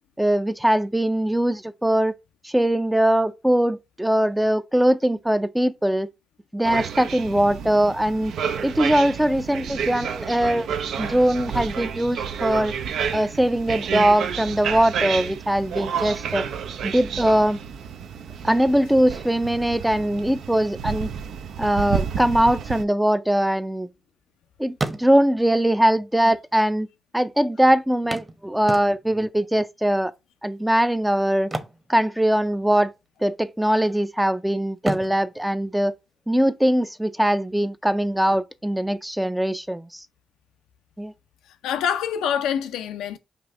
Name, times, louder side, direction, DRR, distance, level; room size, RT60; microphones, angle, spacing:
voice 1, 0.2-2.1 2.4-6.1 6.5-8.3 8.6-12.7 13.1-16.5 16.8-17.6 18.4-21.1 21.6-23.9 24.6-26.9 27.1-30.1 30.4-31.5 31.9-32.9 33.2-35.9 36.3-40.1 41.0-41.1, right 1 dB, 5° right, 0.4 m, -21 dB
sound 1, 6.6-22.8, right 7 dB, 75° right, 0.5 m, -30 dB
sound 2, 23.4-24.4 24.7-25.5 26.4-26.5 26.8-26.9 28.1-29.3 31.3-32.7 32.9-33.2 33.7-34.3 34.8-36.5 38.5-38.6 39.0-39.1, right 2 dB, 25° right, 0.9 m, -33 dB
voice 2, 41.5-43.2, left 8 dB, 90° left, 0.5 m, -26 dB
5.1 x 2.6 x 3.5 m
supercardioid pair, 55°, 0 cm